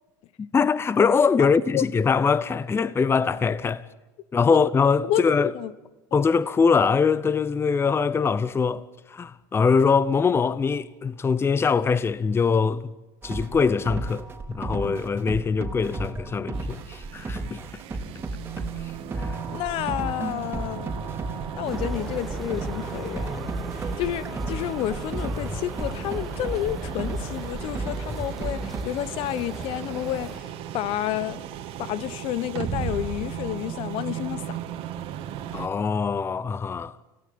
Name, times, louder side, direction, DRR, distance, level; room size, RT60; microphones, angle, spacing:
voice 1, 0.4-3.9 4.3-5.5 6.1-12.9 13.2-17.6 18.8-19.4 35.5-37.0, left 5 dB, 25° left, 0.8 m, -23 dB
voice 2, 1.4-1.8 4.5-4.6 5.0-5.3 5.5-5.7 19.5-20.9 21.5-23.4 23.8-31.4 31.8-34.6, left 12 dB, 60° left, 1.1 m, -30 dB
sound 1, 13.2-28.8, right 2 dB, 20° right, 3.5 m, -34 dB
sound 2, 16.5-35.7, right 9 dB, 60° right, 2.4 m, -36 dB
sound 3, 21.7-30.4, equal, ahead, 1.5 m, -39 dB
25.5 x 16.5 x 9.5 m
supercardioid pair, 95°, 11 cm